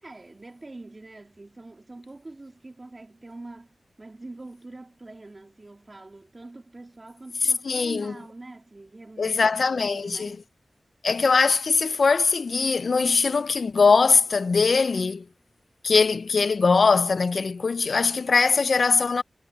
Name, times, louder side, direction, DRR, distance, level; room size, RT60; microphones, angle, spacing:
voice 1, 0.0-3.7 4.0-10.5, right 2 dB, 40° right, 3.2 m, -44 dB
voice 2, 7.7-8.1 9.2-10.4 11.0-15.2 15.8-19.2, left 4 dB, 75° left, 0.5 m, -21 dB
cardioid pair, 55°, 0 cm